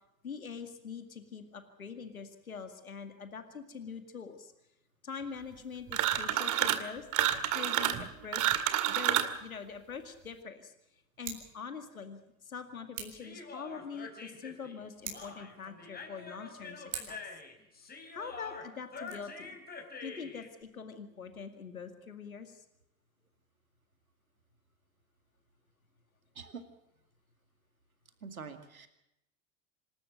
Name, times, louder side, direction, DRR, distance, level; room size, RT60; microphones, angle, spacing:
voice 1, 0.2-4.5 5.0-7.1 7.5-8.6 8.9-10.7 11.2-17.2 17.9-19.6 20.0-22.6, left 6 dB, 90° left, 8 dB, 2.2 m, -44 dB
sound 1, 5.9-6.9 7.1-9.4, right 12 dB, 45° right, 2.2 m, -29 dB
Scissors, 11.1-11.5 12.9-13.3 14.9-15.4 16.9-17.3 18.9-19.1, right 9 dB, 65° right, 4.8 m, -43 dB
Human voice, 13.1-20.5, left 4 dB, 20° left, 4.8 m, -46 dB
voice 2, 28.2-28.9, right 5 dB, 90° right, 9 dB, 2.3 m, -45 dB
26.5 x 13.0 x 8.1 m, 0.85 s
hypercardioid pair, 80°, 41 cm